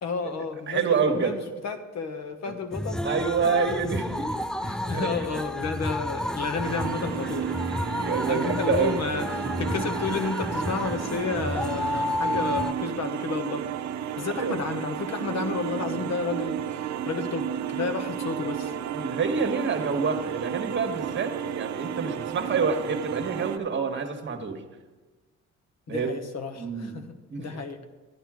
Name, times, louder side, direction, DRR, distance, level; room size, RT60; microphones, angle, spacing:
voice 1, 0.0-3.0 4.6-7.5 8.3-13.7 14.2-18.7 25.9-27.1 27.4-27.8, left 4 dB, 60° left, 8 dB, 1.2 m, -31 dB
voice 2, 0.7-1.4 3.0-4.4 4.9-5.3 8.0-9.0 14.4-14.6 18.9-24.6 25.9-26.1 26.6-26.9 27.3-27.6, right 5 dB, 40° right, 5 dB, 1.4 m, -27 dB
sound 1, 2.7-12.7, left 1 dB, ahead, 0.3 m, -31 dB
sound 2, 6.6-23.6, right 9 dB, 65° right, 0.7 m, -33 dB
11.5 x 10.0 x 4.9 m, 1.3 s
cardioid pair, 90°, 30 cm